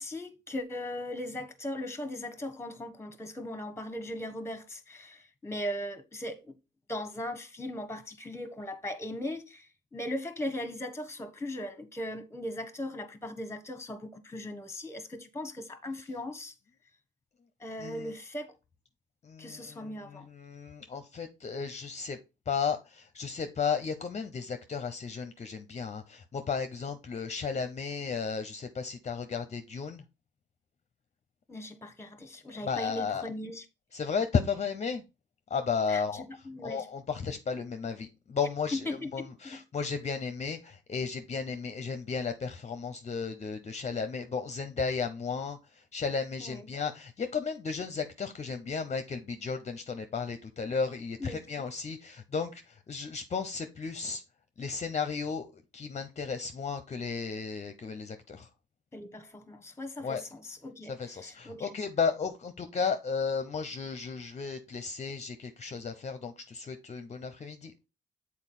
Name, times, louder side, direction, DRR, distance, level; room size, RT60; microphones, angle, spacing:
voice 1, 0.0-6.5 6.9-16.5 17.6-18.5 19.4-20.3 31.5-33.6 35.9-36.9 38.7-39.6 46.4-46.7 51.2-51.4 58.9-61.7, left 1 dB, 15° left, 1.2 m, -38 dB
voice 2, 17.8-18.1 19.2-22.2 22.5-30.0 32.6-33.3 33.9-35.0 35.5-36.2 36.6-54.2 54.6-58.5 60.0-60.2 60.8-67.7, left 5 dB, 35° left, 0.7 m, -34 dB
7.2 x 4.3 x 4.2 m
cardioid pair, 90°, 20 cm